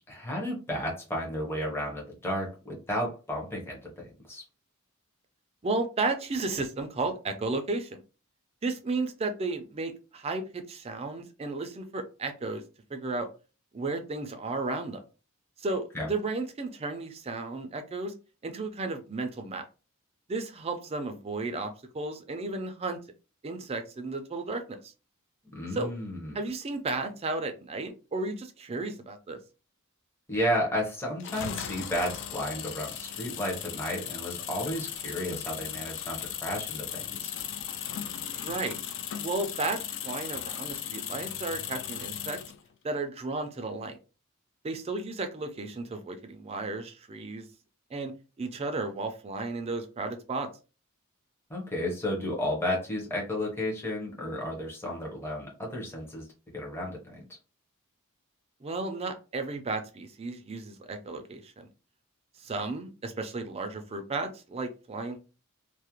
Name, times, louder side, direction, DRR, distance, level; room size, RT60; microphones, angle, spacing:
voice 1, 0.1-4.4 15.9-16.1 25.5-26.4 30.3-37.3 51.5-56.3 56.5-57.2, left 1 dB, 10° left, -3 dB, 0.7 m, -33 dB
voice 2, 5.6-8.0 8.6-12.6 12.9-13.3 13.7-15.0 15.6-18.1 18.4-19.6 20.3-23.0 23.4-24.9 25.7-25.9 26.3-29.4 38.4-38.8 39.2-42.4 42.8-44.0 44.6-47.5 47.9-48.1 48.4-50.5 58.6-61.7 62.4-65.2, right 3 dB, 25° right, 7 dB, 0.4 m, -33 dB
sound 1, 31.2-42.6, left 9 dB, 55° left, 0.3 m, -37 dB
2.4 x 2.0 x 2.9 m, 0.33 s
head